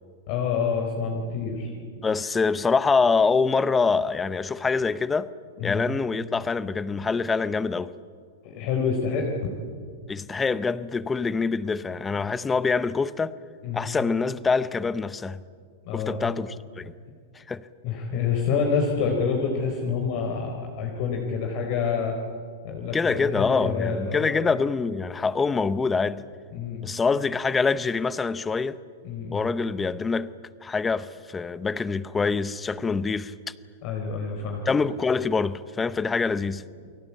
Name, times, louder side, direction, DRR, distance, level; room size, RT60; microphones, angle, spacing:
voice 1, 0.3-1.8 5.6-5.9 8.4-9.3 13.6-13.9 15.9-16.3 17.8-22.2 22.6-24.5 26.5-26.8 29.0-29.5 33.8-34.6, left 5 dB, 45° left, 3.8 m, -27 dB
voice 2, 2.0-5.3 5.6-7.9 10.1-13.4 13.7-15.4 15.9-16.5 16.8-16.9 17.5-17.6 22.9-26.2 26.8-28.8 29.3-30.3 30.6-33.5 34.7-36.6, left 4 dB, 10° left, 0.7 m, -25 dB
29.5 x 22.0 x 8.4 m
supercardioid pair, 160°, 0 cm